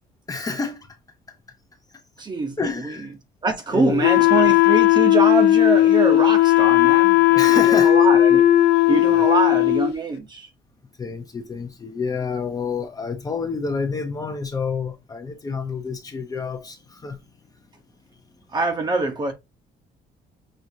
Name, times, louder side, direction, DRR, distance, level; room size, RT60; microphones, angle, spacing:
voice 1, 0.3-0.9 2.6-3.1 3.7-4.1 7.3-7.9 9.1-9.4 11.0-17.2, left 5 dB, 20° left, 0.7 m, -28 dB
voice 2, 2.2-2.6 2.8-2.9 3.4-8.4 8.9-10.5 18.5-19.3, right 3 dB, 25° right, 0.9 m, -24 dB
Wind instrument woodwind instrument, 4.0-9.9, left 14 dB, 80° left, 0.6 m, -16 dB
6.3 x 2.7 x 2.7 m
cardioid pair, 150°, 17 cm